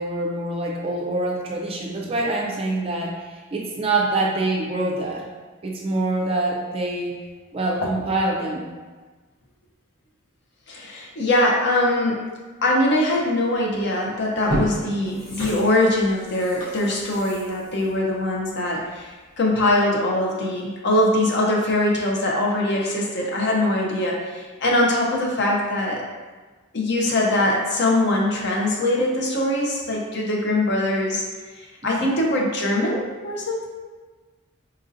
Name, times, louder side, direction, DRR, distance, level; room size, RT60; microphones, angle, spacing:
voice 1, 0.0-5.3 5.6-7.2 7.5-8.7 31.8-32.1, right 2 dB, 25° right, -1 dB, 0.4 m, -25 dB
voice 2, 10.7-12.2 12.6-26.0 26.7-31.2 31.8-33.7, left 1 dB, 55° left, -2 dB, 0.6 m, -22 dB
sound 1, 13.7-13.8 14.3-19.0 19.4-19.5, equal, 70° left, 1.0 m, -32 dB
4.1 x 2.6 x 2.6 m, 1.3 s
head